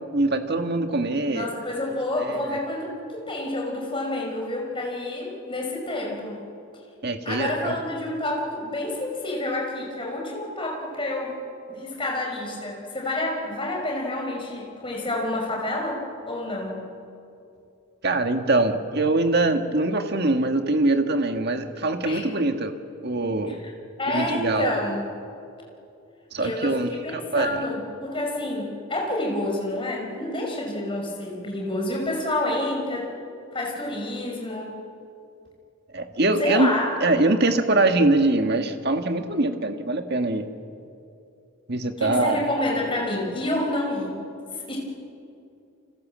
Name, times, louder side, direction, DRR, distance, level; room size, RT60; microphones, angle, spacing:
voice 1, 0.1-1.5 2.2-2.6 7.0-7.8 18.0-22.8 23.0-23.6 24.1-24.7 26.3-27.7 35.9-40.5 41.7-42.4, right 2 dB, 50° right, 6 dB, 1.7 m, -23 dB
voice 2, 1.3-6.4 7.2-11.4 11.7-16.9 22.0-22.3 23.5-23.6 24.0-25.0 26.4-33.1 33.5-34.8 36.4-36.9 42.0-44.2 44.7-44.8, left 1 dB, 25° left, 0 dB, 5.4 m, -28 dB
29.5 x 25.5 x 7.6 m, 2.6 s
head